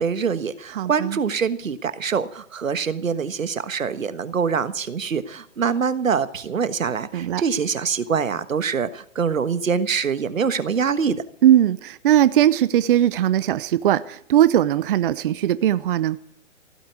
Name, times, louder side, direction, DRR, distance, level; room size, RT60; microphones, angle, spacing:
voice 1, 0.0-11.2, right 6 dB, 85° right, 1.4 m, -24 dB
voice 2, 0.7-1.2 7.1-7.4 11.4-16.2, right 11 dB, 45° right, 0.6 m, -19 dB
16.0 x 8.5 x 9.3 m
hypercardioid pair, 140°, 39 cm